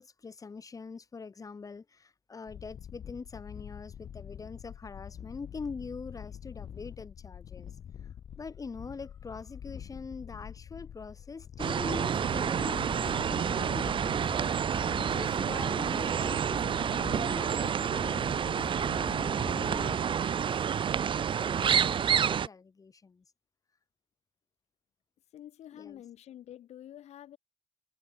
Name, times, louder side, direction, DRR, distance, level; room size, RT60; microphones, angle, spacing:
voice 1, 0.0-7.7 8.4-14.5 15.0-20.6 20.9-23.2 25.7-26.0, left 4 dB, 30° left, 5.2 m, -44 dB
sound 1, 2.5-20.0, left 9 dB, 60° left, 5.2 m, -45 dB
sound 2, 11.6-22.5, right 8 dB, 50° right, 1.1 m, -29 dB
voice 2, 25.3-27.4, left 11 dB, 80° left, 3.4 m, -48 dB
cardioid pair, 120°, 11 cm